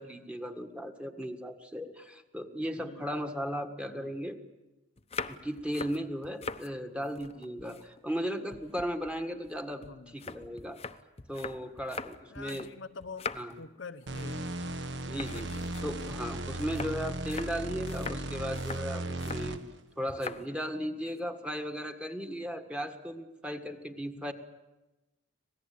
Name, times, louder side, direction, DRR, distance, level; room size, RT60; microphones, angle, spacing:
voice 1, 0.0-4.4 5.3-10.8 11.3-12.7 13.3-13.5 15.0-15.5 15.8-19.6 20.0-24.3, equal, 5° right, 6 dB, 1.6 m, -36 dB
voice 2, 2.8-3.1 3.9-4.1 9.8-10.3 12.3-13.3 13.6-14.8 15.3-15.7 24.2-24.3, left 4 dB, 70° left, 9 dB, 0.9 m, -46 dB
sound 1, 5.0-6.7 7.0-8.2 8.5-12.7 13.0-13.7 14.0-14.4 14.6-14.8 15.2-19.5 20.1-20.5 20.8-21.2, left 4 dB, 30° left, 0.9 m, -42 dB
sound 2, 14.1-19.8, right 1 dB, 65° right, 1.4 m, -36 dB
26.0 x 18.5 x 8.6 m, 1.1 s
head